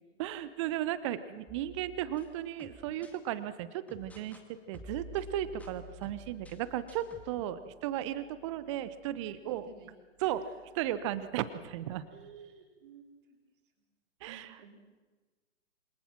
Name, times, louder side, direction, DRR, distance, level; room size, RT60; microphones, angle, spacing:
voice 1, 0.2-9.7 10.2-10.5 10.7-12.1 14.2-14.6, right 12 dB, 25° right, 14 dB, 1.0 m, -35 dB
sound 1, 1.5-3.2 3.9-4.4 4.7-7.3, equal, 5° left, 2.1 m, -50 dB
voice 2, 9.3-9.9 12.1-13.4 14.3-14.8, right 6 dB, 45° right, 1 dB, 4.3 m, -54 dB
27.0 x 26.0 x 6.1 m, 1.3 s
figure-of-eight pair, 125°, 38 cm